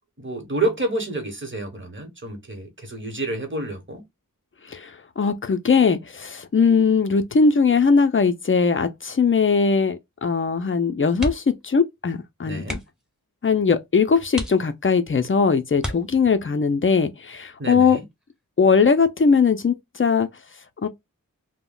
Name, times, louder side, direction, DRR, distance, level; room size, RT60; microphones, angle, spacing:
voice 1, 0.2-4.0 12.4-12.8 17.6-18.0, right 2 dB, 35° right, 1.0 m, -29 dB
voice 2, 4.7-12.8 13.4-18.0 18.6-20.3 20.8-20.9, left 5 dB, 40° left, 0.5 m, -20 dB
sound 1, 11.1-11.7 12.0-12.1 12.6-13.1 13.7-13.8 14.3-15.1 15.8-16.5 18.1-18.4 18.8-18.9, equal, ahead, 0.7 m, -33 dB
2.3 x 2.1 x 3.7 m
wide cardioid pair, 40°, 33 cm